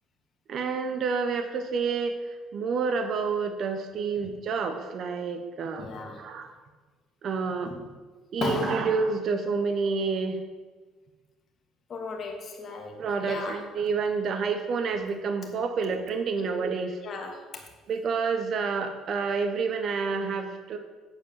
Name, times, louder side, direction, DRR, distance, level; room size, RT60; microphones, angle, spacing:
voice 1, 0.5-5.9 6.2-6.5 7.2-7.7 8.3-10.4 13.0-17.0 17.9-20.8, right 5 dB, 55° right, 7 dB, 1.0 m, -29 dB
voice 2, 5.8-6.2 7.7-7.8 8.4-9.0 11.9-13.6 16.3-16.4 17.0-17.6, left 3 dB, 50° left, 2 dB, 2.0 m, -35 dB
9.2 x 4.6 x 7.2 m, 1.4 s
supercardioid pair, 80°, 0 cm